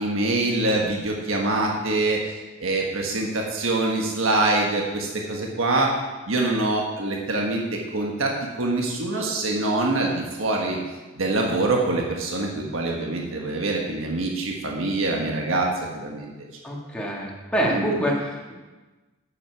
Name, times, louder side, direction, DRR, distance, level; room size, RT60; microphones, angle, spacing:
voice 1, 0.0-2.2 2.6-5.9 6.3-7.6 7.9-10.8 11.1-16.3 17.7-17.9, right 2 dB, 70° right, 0 dB, 1.4 m, -24 dB
voice 2, 16.6-18.5, right 1 dB, 5° left, -3 dB, 1.8 m, -26 dB
10.5 x 8.7 x 4.7 m, 1.2 s
head